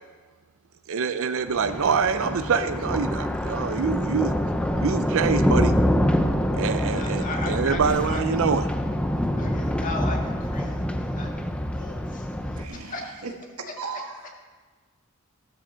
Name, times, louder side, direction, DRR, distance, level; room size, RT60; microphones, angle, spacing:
voice 1, 0.9-4.3 4.8-5.7 6.5-8.7, right 6 dB, 65° right, 11 dB, 0.5 m, -25 dB
Thunder, 1.5-12.6, equal, 5° left, 0.6 m, -26 dB
voice 2, 6.9-8.5 9.4-10.7 11.1-11.3 11.7-12.2 12.7-13.0, left 3 dB, 40° left, 0 dB, 1.9 m, -35 dB
voice 3, 12.6-14.3, right 4 dB, 85° right, 2 dB, 1.7 m, -37 dB
15.0 x 12.5 x 3.9 m, 1.4 s
head